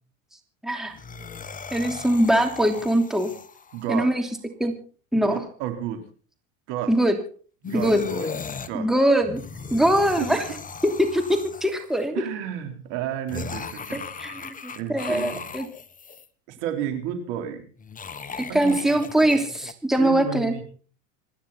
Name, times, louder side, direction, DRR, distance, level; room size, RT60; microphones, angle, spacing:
voice 1, 0.6-1.0 1.7-3.3 3.9-4.2 4.6-4.7 5.1-5.4 6.9-7.2 7.7-8.0 8.7-9.4 9.7-10.4 10.8-12.2 13.9-15.7 18.5-20.6, right 1 dB, ahead, 5 dB, 2.9 m, -22 dB
sound 1, 0.9-3.9 7.6-8.7 9.2-12.0 13.3-16.3 17.8-19.7, left 5 dB, 20° left, 1.3 m, -37 dB
voice 2, 3.7-4.1 5.1-6.0 6.7-6.9 7.6-8.3 8.7-8.9 10.2-10.4 12.1-14.0 14.8-15.4 16.5-17.6 18.5-19.3 20.0-20.6, right 10 dB, 65° right, 7 dB, 4.1 m, -32 dB
27.0 x 10.5 x 4.2 m, 0.41 s
hypercardioid pair, 100°, 39 cm